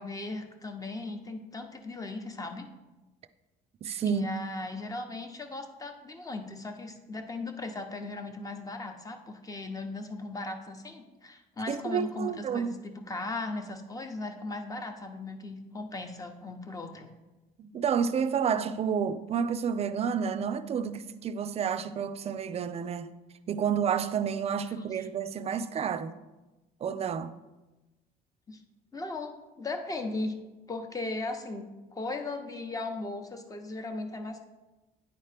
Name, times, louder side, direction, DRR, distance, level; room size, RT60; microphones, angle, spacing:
voice 1, 0.0-2.7 4.0-17.1 25.0-25.1 28.5-28.6 28.9-30.4 30.7-34.4, left 2 dB, 20° left, 0.8 m, -37 dB
voice 2, 3.8-4.2 11.7-12.7 17.6-23.1 23.5-26.1 26.8-27.4, right 7 dB, 40° right, 0.4 m, -30 dB
9.4 x 4.3 x 3.3 m
cardioid pair, 110°, 17 cm